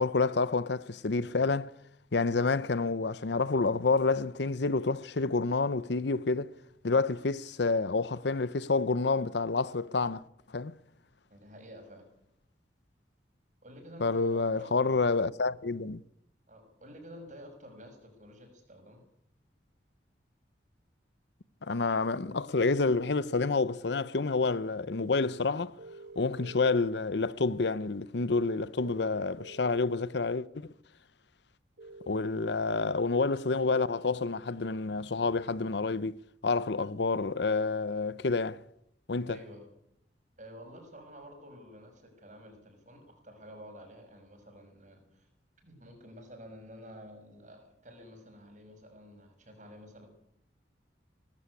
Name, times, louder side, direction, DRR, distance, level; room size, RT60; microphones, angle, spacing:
voice 1, 0.0-1.7 2.1-6.5 6.8-10.2 10.5-10.7 14.0-16.0 21.6-25.8 26.2-30.7 32.1-36.1 36.4-38.6 39.1-39.4, left 3 dB, 70° left, 0.7 m, -28 dB
voice 2, 11.3-12.1 13.6-15.2 16.5-19.0 32.1-32.2 39.3-39.7 40.4-45.3 45.6-50.1, equal, 40° right, 6.1 m, -50 dB
sound 1, 25.8-26.8 28.8-29.8 31.8-32.2, right 3 dB, 70° right, 2.2 m, -48 dB
19.0 x 15.0 x 9.8 m
head